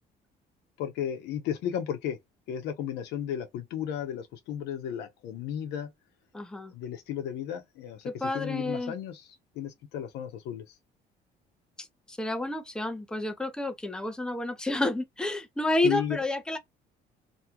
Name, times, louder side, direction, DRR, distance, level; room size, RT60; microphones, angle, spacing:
voice 1, 0.8-2.2 2.5-5.9 6.7-9.2 9.5-10.7 15.8-16.2, left 9 dB, 85° left, 0.8 m, -34 dB
voice 2, 6.3-6.7 8.1-8.9 11.8-16.6, left 2 dB, 5° left, 0.6 m, -30 dB
2.7 x 2.3 x 2.8 m
cardioid pair, 110°, 17 cm